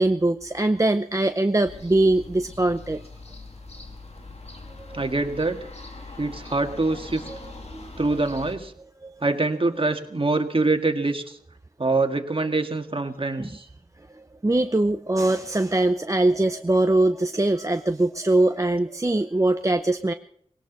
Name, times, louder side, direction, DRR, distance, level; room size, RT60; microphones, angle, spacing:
voice 1, 0.0-3.0 4.8-5.1 7.3-7.4 7.7-7.9 9.0-9.1 13.4-13.5 14.4-20.1, right 2 dB, 20° right, 7 dB, 0.7 m, -22 dB
sound 1, 1.7-8.6, left 3 dB, 50° left, 2.4 m, -42 dB
voice 2, 4.9-5.6 6.2-7.3 8.0-8.7 9.2-11.4 11.8-13.7, right 3 dB, 40° right, 6 dB, 1.9 m, -24 dB
19.5 x 18.0 x 4.1 m, 0.70 s
wide cardioid pair, 60°, 14 cm